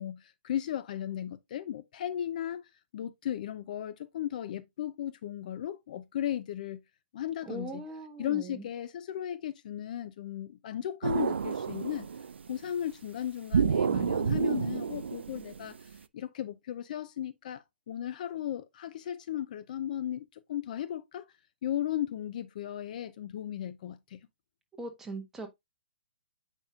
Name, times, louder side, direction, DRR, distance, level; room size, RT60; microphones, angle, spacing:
voice 1, 0.0-6.8 7.1-7.8 8.2-12.1 12.5-21.3 21.6-24.2, left 11 dB, 45° left, 0.6 m, -36 dB
voice 2, 7.4-8.7 24.8-25.5, right 2 dB, 5° right, 1.3 m, -40 dB
sound 1, 11.0-12.5 13.5-16.0, right 6 dB, 85° right, 0.5 m, -29 dB
8.7 x 5.3 x 2.4 m
hypercardioid pair, 155°, 6 cm